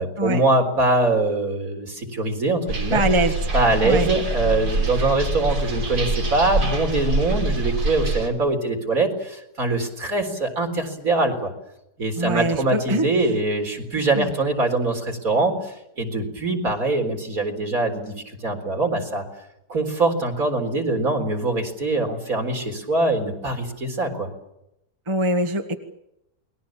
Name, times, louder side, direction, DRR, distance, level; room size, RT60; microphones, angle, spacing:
voice 1, 0.0-3.0 3.5-11.5 12.0-19.2 19.7-24.3, right 2 dB, 60° right, 4 dB, 4.4 m, -23 dB
sound 1, 2.7-8.3, right 2 dB, 90° right, 3.6 m, -25 dB
voice 2, 2.9-3.3 3.8-4.1 12.2-13.3 14.2-14.3 25.1-25.8, right 1 dB, 20° right, 5 dB, 1.6 m, -23 dB
29.0 x 21.0 x 7.4 m, 0.85 s
omnidirectional pair, 1.7 m